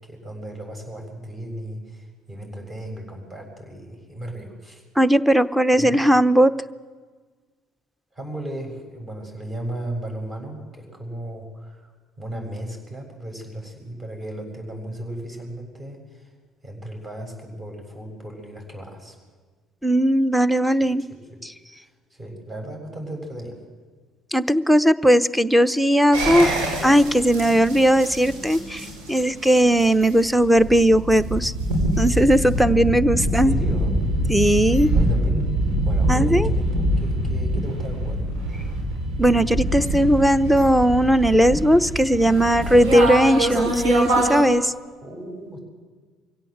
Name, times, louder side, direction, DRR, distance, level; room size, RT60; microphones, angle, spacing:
voice 1, 0.1-4.8 5.8-6.1 8.1-11.9 12.2-16.3 16.6-19.2 21.0-21.4 21.7-23.6 33.1-34.0 34.9-35.5 35.9-38.2 45.0-45.6, right 1 dB, 30° right, 2 dB, 7.5 m, -35 dB
voice 2, 5.0-6.5 19.8-21.0 24.3-26.5 26.8-31.5 32.0-33.5 34.3-34.9 36.1-36.5 39.2-44.7, equal, 5° right, 17 dB, 0.9 m, -18 dB
sound 1, 26.1-44.4, right 1 dB, 75° right, 5.2 m, -25 dB
23.5 x 16.5 x 8.0 m, 1.5 s
hypercardioid pair, 55°, 0 cm